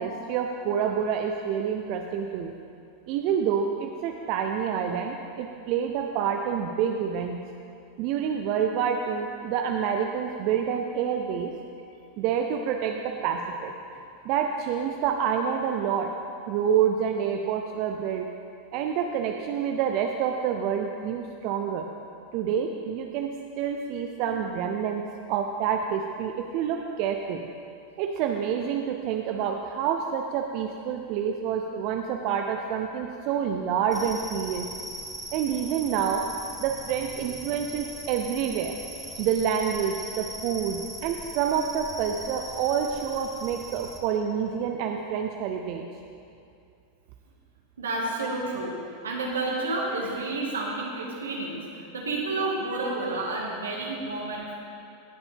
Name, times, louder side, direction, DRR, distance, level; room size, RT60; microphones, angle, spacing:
voice 1, 0.0-2.5 3.1-7.4 8.0-11.5 12.2-13.7 14.2-16.1 16.5-18.3 18.7-21.9 22.3-25.0 25.3-27.5 28.0-34.7 35.3-36.2 36.6-38.8 39.2-45.9, right 8 dB, 55° right, 4 dB, 0.6 m, -28 dB
sound 1, 33.9-44.0, right 1 dB, 5° right, 1.6 m, -40 dB
voice 2, 47.8-48.8 49.0-54.5, right 2 dB, 85° right, -2 dB, 2.0 m, -30 dB
18.0 x 7.0 x 3.6 m, 2.5 s
hypercardioid pair, 95°, 0 cm